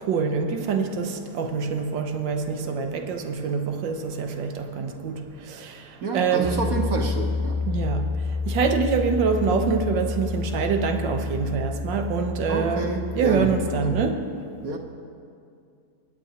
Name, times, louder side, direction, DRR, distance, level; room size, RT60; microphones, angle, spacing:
voice 1, 0.0-6.8 7.7-12.8 13.1-14.2, right 5 dB, 85° right, 6 dB, 1.6 m, -25 dB
voice 2, 6.0-7.6 12.5-13.6 13.8-14.0 14.6-14.8, right 4 dB, 55° right, 2 dB, 1.2 m, -29 dB
Piano, 6.4-14.1, left 4 dB, 5° right, 1.0 m, -29 dB
27.0 x 9.6 x 2.9 m, 2.3 s
omnidirectional pair, 2.0 m